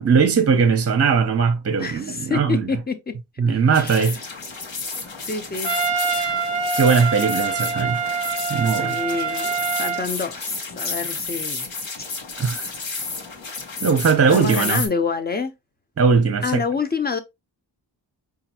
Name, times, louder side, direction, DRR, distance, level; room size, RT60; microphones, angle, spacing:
voice 1, 0.0-2.7 3.4-4.2 6.8-8.0 8.5-9.0 12.4-12.7 13.8-14.8 16.0-16.5, right 5 dB, 35° right, 0.6 m, -19 dB
voice 2, 1.8-3.1 3.5-4.2 5.2-5.8 8.7-11.7 14.3-15.5 16.4-17.2, left 5 dB, 20° left, 0.6 m, -27 dB
sound 1, 3.7-14.9, left 4 dB, 85° left, 1.1 m, -32 dB
Trumpet, 5.6-10.1, right 5 dB, 60° left, 1.5 m, -25 dB
5.0 x 2.5 x 2.8 m
wide cardioid pair, 95°, 44 cm